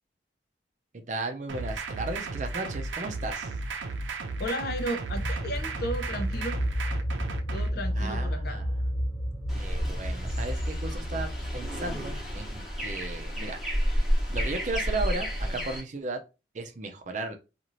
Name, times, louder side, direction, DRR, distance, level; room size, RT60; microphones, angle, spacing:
voice 1, 0.9-3.5 8.0-8.7 9.5-13.6 14.3-16.2 16.5-17.4, right 2 dB, 40° right, 6 dB, 0.5 m, -35 dB
sound 1, 1.5-7.7, right 3 dB, 90° right, 0.5 m, -34 dB
voice 2, 4.4-6.6 7.5-8.6, equal, 55° left, 5 dB, 0.6 m, -34 dB
sound 2, 5.1-12.4, equal, 25° left, 1.1 m, -32 dB
sound 3, 9.5-15.8, equal, ahead, 0.9 m, -31 dB
2.7 x 2.5 x 3.0 m, 0.28 s
head